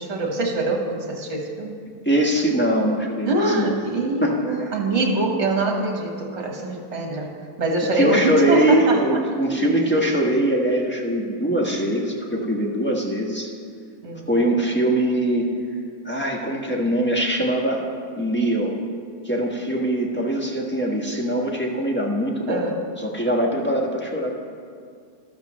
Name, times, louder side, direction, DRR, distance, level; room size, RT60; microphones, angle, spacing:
voice 1, 0.0-1.7 3.3-9.0 14.0-14.3 22.5-22.7, right 2 dB, 50° right, 1 dB, 1.7 m, -24 dB
voice 2, 2.0-3.8 4.2-4.7 7.9-13.5 14.3-15.5 16.0-17.9 18.2-18.8 19.2-22.6 23.0-24.3, right 1 dB, 10° left, -2 dB, 1.2 m, -22 dB
13.0 x 13.0 x 3.1 m, 2.2 s
omnidirectional pair, 1.6 m